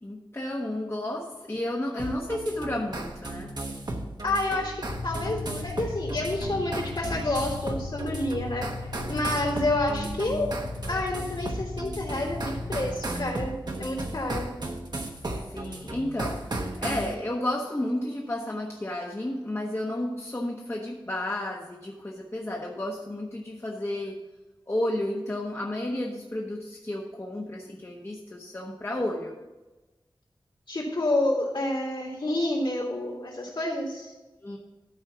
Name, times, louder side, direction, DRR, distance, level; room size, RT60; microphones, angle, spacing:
voice 1, 0.0-3.5 15.5-24.2 24.7-29.3 34.4-34.6, left 1 dB, 30° left, -2 dB, 1.2 m, -32 dB
sound 1, 2.0-17.1, right 2 dB, 55° right, 1.2 m, -35 dB
voice 2, 4.2-8.6 9.1-10.5 10.9-14.5 30.7-34.1, left 1 dB, 65° left, -4 dB, 3.3 m, -29 dB
sound 2, 4.9-12.9, left 3 dB, 80° left, 1.1 m, -37 dB
12.5 x 4.4 x 6.2 m, 1.1 s
wide cardioid pair, 80°, 9 cm